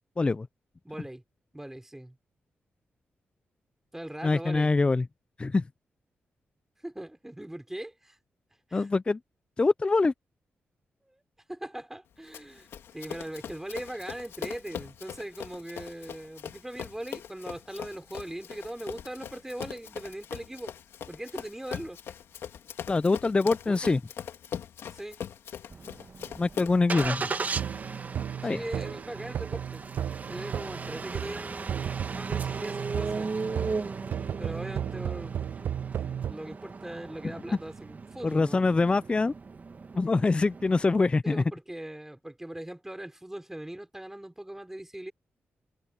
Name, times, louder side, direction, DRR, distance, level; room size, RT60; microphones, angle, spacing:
voice 1, 0.8-1.2 1.5-2.2 3.9-4.7 6.8-8.2 8.7-8.9 11.1-11.2 11.5-12.7 12.9-20.7 21.1-22.0 23.7-23.9 24.9-25.2 28.4-29.8 30.3-33.3 34.4-35.4 36.3-38.6 41.2-45.1, right 1 dB, 10° right, 5.2 m, -40 dB
voice 2, 4.2-5.0 5.4-5.6 8.7-9.2 9.6-10.1 22.9-24.0 26.4-27.3 28.4-28.6 38.2-39.3 40.0-41.4, left 3 dB, 25° left, 0.4 m, -24 dB
Run, 12.3-27.3, left 9 dB, 85° left, 2.9 m, -41 dB
Engine starting, 25.7-41.0, right 4 dB, 40° right, 1.3 m, -37 dB
sound 1, 27.5-31.4 31.7-36.3, right 9 dB, 75° right, 0.3 m, -34 dB
cardioid pair, 85°, 4 cm